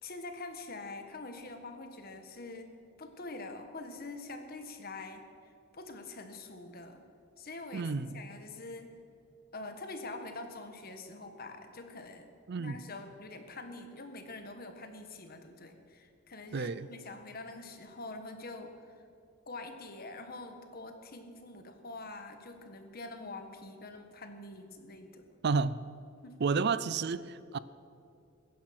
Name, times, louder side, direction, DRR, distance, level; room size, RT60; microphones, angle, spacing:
voice 1, 0.0-7.0 7.4-9.0 9.5-19.0 19.5-25.3 26.2-26.4, left 2 dB, 45° left, 1.5 m, -45 dB
voice 2, 7.7-8.2 12.5-12.8 16.5-16.9 25.4-25.8 26.4-27.6, right 4 dB, 50° right, 0.4 m, -31 dB
21.5 x 10.5 x 6.0 m
head